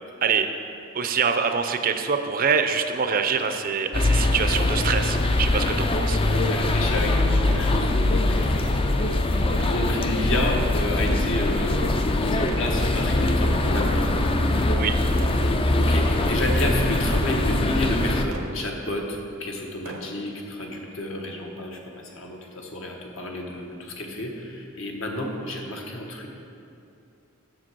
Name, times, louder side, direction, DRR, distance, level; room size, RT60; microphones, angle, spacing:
voice 1, 0.9-6.2 14.8-15.0, right 6 dB, 45° right, 7 dB, 0.5 m, -25 dB
sound 1, 3.9-18.2, left 2 dB, 25° left, 0.4 m, -22 dB
sound 2, 4.5-5.6 6.3-8.7 9.5-10.5 11.0-11.9 12.3-19.3 19.6-20.7 21.1-21.2 21.8-21.9, right 2 dB, 80° right, 0.7 m, -42 dB
voice 2, 6.3-8.9 9.3-14.1 15.4-26.3, left 1 dB, 65° left, 1 dB, 1.2 m, -30 dB
7.5 x 6.6 x 6.1 m, 2.7 s
head